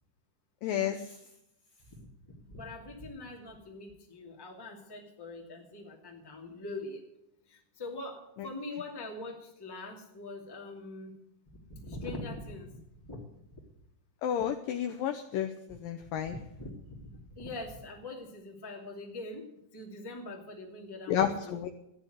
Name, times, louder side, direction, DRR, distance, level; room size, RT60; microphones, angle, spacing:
voice 1, 0.6-1.2 14.2-16.4 21.1-21.7, left 9 dB, 85° left, 6 dB, 1.9 m, -31 dB
voice 2, 1.9-7.0 7.5-11.1 11.7-13.2 13.5-13.6 16.3-21.6, left 2 dB, 10° left, 0 dB, 1.2 m, -43 dB
14.0 x 10.0 x 7.8 m, 0.82 s
omnidirectional pair, 5.1 m